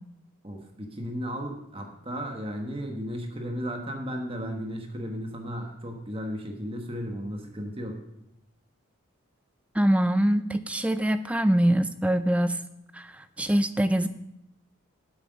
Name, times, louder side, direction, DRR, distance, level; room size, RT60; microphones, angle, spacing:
voice 1, 0.4-8.0, equal, 25° right, 3 dB, 1.3 m, -34 dB
voice 2, 9.8-12.6 12.9-13.1 13.4-14.1, right 1 dB, 5° right, 11 dB, 0.3 m, -23 dB
8.3 x 7.9 x 5.2 m, 0.83 s
head